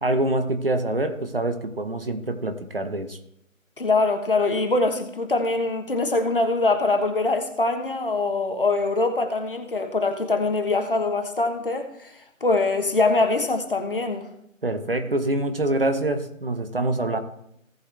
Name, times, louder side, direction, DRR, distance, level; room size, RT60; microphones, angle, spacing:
voice 1, 0.0-3.2 14.6-17.2, right 1 dB, 45° right, 8 dB, 1.1 m, -25 dB
voice 2, 3.8-12.1 12.4-14.3, left 3 dB, 40° left, 6 dB, 1.3 m, -23 dB
17.5 x 6.3 x 3.4 m, 0.75 s
figure-of-eight pair, 165°, 40 cm